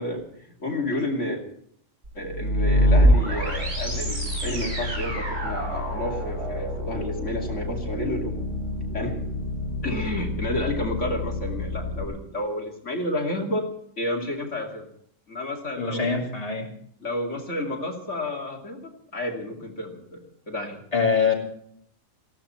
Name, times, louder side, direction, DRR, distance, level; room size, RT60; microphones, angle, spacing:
voice 1, 0.0-1.4 2.1-8.4 8.9-9.2 9.8-13.7 14.0-14.9 15.3-16.2 17.0-20.8, left 1 dB, 60° left, 1 dB, 3.0 m, -31 dB
sound 1, 2.0-12.0, equal, 55° right, 5.5 m, -26 dB
voice 2, 15.8-16.7 20.9-21.3, left 5 dB, 25° left, 0 dB, 2.9 m, -23 dB
20.0 x 15.5 x 4.4 m, 0.67 s
omnidirectional pair, 1.4 m